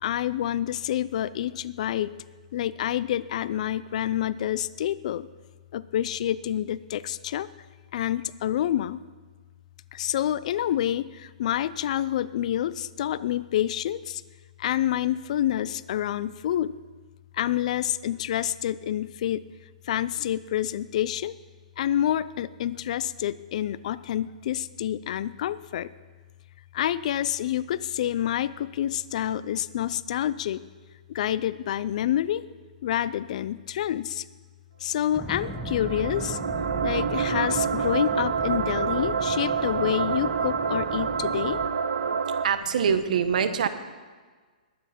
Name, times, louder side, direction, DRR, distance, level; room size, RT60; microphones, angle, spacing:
voice 1, 0.0-2.1 2.5-5.3 5.7-7.5 7.9-9.0 9.9-14.2 14.6-16.8 17.3-19.4 19.9-21.3 21.8-25.9 26.7-30.6 31.1-32.4 32.8-34.2 34.8-36.4 36.8-41.6, left 11 dB, 55° left, 18 dB, 0.5 m, -28 dB
sound 1, 35.0-42.5, right 6 dB, 85° right, 0.8 m, -27 dB
sound 2, 35.1-41.7, equal, 5° left, 0.9 m, -38 dB
voice 2, 42.4-43.7, right 7 dB, 70° right, 10 dB, 1.1 m, -24 dB
21.5 x 9.4 x 4.3 m, 1.5 s
hypercardioid pair, 135°, 4 cm